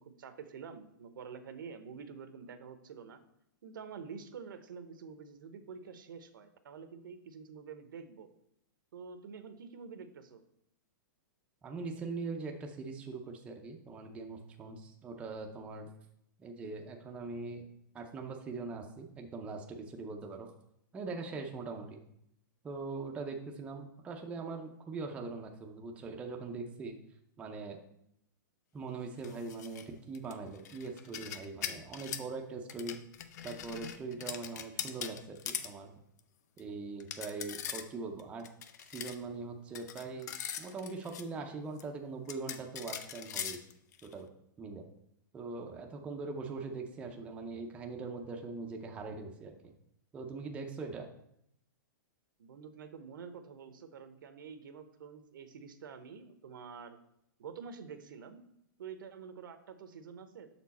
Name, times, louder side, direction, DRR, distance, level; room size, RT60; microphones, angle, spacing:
voice 1, 0.0-3.2 3.6-8.3 8.9-10.4 52.4-57.0 57.4-58.4 58.8-60.6, right 6 dB, 75° right, 9 dB, 0.8 m, -48 dB
voice 2, 11.6-15.9 16.4-17.6 17.9-20.5 20.9-22.0 22.6-27.0 27.4-27.8 28.7-33.0 33.4-35.9 36.6-38.5 38.9-43.6 44.0-44.3 44.6-44.8 45.3-49.7 50.1-51.1, right 4 dB, 10° right, 2 dB, 0.5 m, -41 dB
sound 1, 29.2-29.8 30.1-32.3 32.7-35.7 36.2-36.3 36.6-36.7 37.0-37.9 38.2-39.2 39.7-41.2 41.8-41.9 42.3-44.1, left 9 dB, 55° left, 0.5 m, -41 dB
6.8 x 4.5 x 4.1 m, 0.74 s
hypercardioid pair, 160°, 11 cm